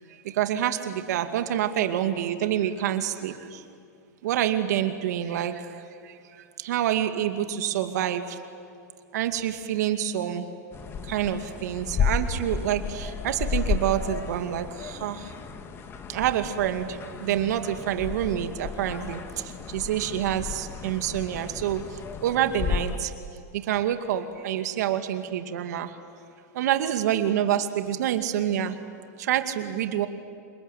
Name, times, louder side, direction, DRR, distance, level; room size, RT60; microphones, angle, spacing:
voice 1, 0.2-3.6 4.2-8.4 9.1-10.5 11.0-15.3 16.1-23.1 23.5-25.9 26.5-28.8 29.2-30.1, right 11 dB, 75° right, 7 dB, 2.4 m, -27 dB
sound 1, 10.7-23.0, left 5 dB, 25° left, 1.9 m, -33 dB
27.5 x 22.0 x 9.4 m, 2.4 s
supercardioid pair, 135°, 9 cm